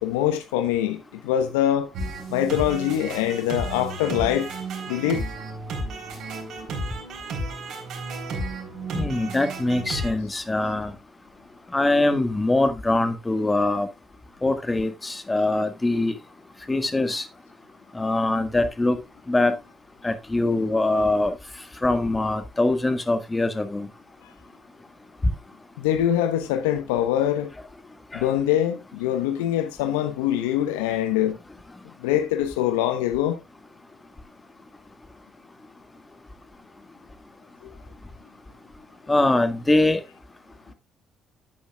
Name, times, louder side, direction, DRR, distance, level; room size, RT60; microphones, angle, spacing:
voice 1, 0.0-1.9 2.3-4.5 4.9-5.2 25.8-27.5 28.1-31.4 32.0-33.4 37.6-37.7, left 11 dB, 80° left, 1.0 m, -24 dB
sound 1, 1.9-10.1, right 2 dB, 65° right, 3.8 m, -32 dB
voice 2, 8.9-10.9 11.7-13.9 14.4-16.1 16.7-17.3 17.9-19.0 19.3-19.6 20.0-21.4 21.8-23.9 28.1-28.3 39.1-40.0, left 2 dB, 20° left, 1.8 m, -23 dB
11.0 x 8.7 x 2.4 m
hypercardioid pair, 50°, 0 cm